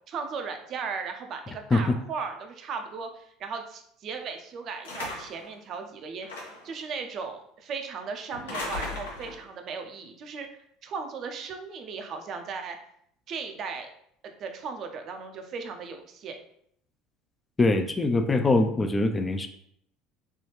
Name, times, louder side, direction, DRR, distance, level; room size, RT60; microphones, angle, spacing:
voice 1, 0.1-6.3 6.6-12.8 13.3-13.9 14.4-16.4, right 5 dB, 50° right, 5 dB, 0.5 m, -37 dB
sound 1, 4.8-5.5 6.2-6.7 8.3-9.4, left 2 dB, 80° left, 0.7 m, -36 dB
voice 2, 17.6-19.5, left 2 dB, 20° left, 7 dB, 0.3 m, -23 dB
3.3 x 2.3 x 3.0 m, 0.69 s
hypercardioid pair, 65°, 0 cm